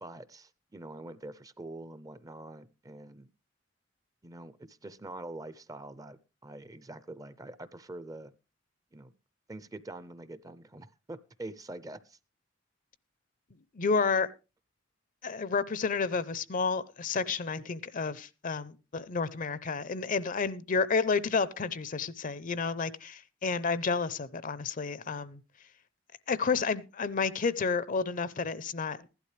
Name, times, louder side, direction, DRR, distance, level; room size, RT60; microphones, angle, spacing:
voice 1, 0.0-3.3 4.2-8.3 8.9-9.1 9.5-12.2, right 2 dB, 20° right, 0.5 m, -45 dB
voice 2, 13.7-14.3 15.2-25.4 26.3-29.1, left 4 dB, 45° left, 0.6 m, -30 dB
15.5 x 11.5 x 3.3 m
head